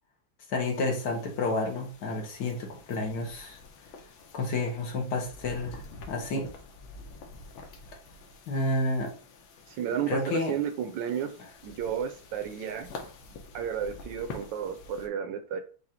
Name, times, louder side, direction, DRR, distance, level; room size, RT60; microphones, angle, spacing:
voice 1, 0.5-3.6 4.3-6.5 8.5-9.1 10.1-10.6, left 2 dB, 65° left, 2 dB, 1.4 m, -30 dB
sound 1, 0.6-15.1, left 3 dB, 85° left, 1.5 m, -48 dB
voice 2, 9.7-11.4 11.6-12.9 13.5-15.6, right 8 dB, 75° right, 8 dB, 1.2 m, -32 dB
4.9 x 2.4 x 4.2 m, 0.40 s
omnidirectional pair, 2.1 m